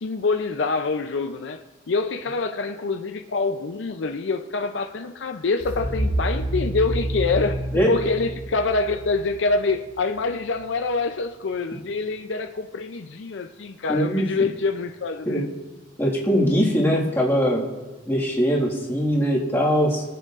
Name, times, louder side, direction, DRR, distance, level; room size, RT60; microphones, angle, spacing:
voice 1, 0.0-15.5, left 3 dB, 70° left, 0.5 m, -26 dB
sound 1, 5.6-10.5, right 1 dB, 50° right, 2.4 m, -29 dB
voice 2, 13.9-14.3 15.3-15.4 16.0-17.6 18.1-20.0, equal, 15° left, 1.7 m, -21 dB
22.5 x 7.8 x 2.5 m
head